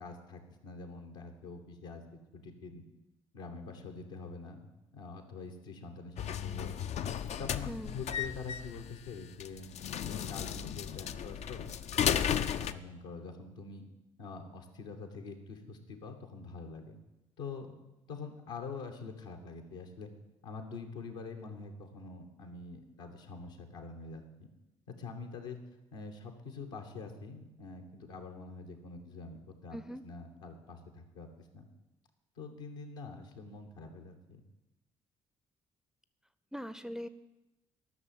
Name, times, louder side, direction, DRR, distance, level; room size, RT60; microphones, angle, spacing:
voice 1, 0.0-2.0 2.3-2.8 3.3-6.7 7.0-9.7 10.1-11.7 12.0-13.8 14.2-17.0 17.4-17.7 18.1-20.1 20.4-24.5 24.9-25.6 25.9-29.8 30.0-31.7 32.4-34.4, left 4 dB, 75° left, 4 dB, 1.4 m, -45 dB
sound 1, 6.2-12.7, left 9 dB, 45° left, 0.5 m, -34 dB
voice 2, 29.7-30.0 36.5-37.1, equal, 5° right, 13 dB, 0.6 m, -41 dB
12.5 x 6.4 x 7.7 m, 0.98 s
figure-of-eight pair, 45°, 15 cm